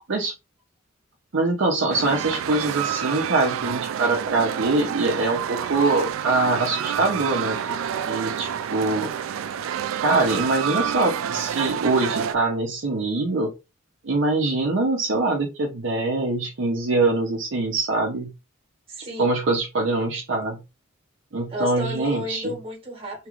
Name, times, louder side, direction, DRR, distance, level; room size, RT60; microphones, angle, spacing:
voice 1, 1.3-9.1 10.0-13.5 14.0-18.3 19.2-20.6 21.3-22.4, right 2 dB, 65° right, 0.7 m, -23 dB
sound 1, 1.9-12.4, right 9 dB, 90° right, 0.3 m, -28 dB
voice 2, 18.9-19.4 21.5-23.3, left 1 dB, 30° right, 1.3 m, -32 dB
2.9 x 2.4 x 3.0 m
head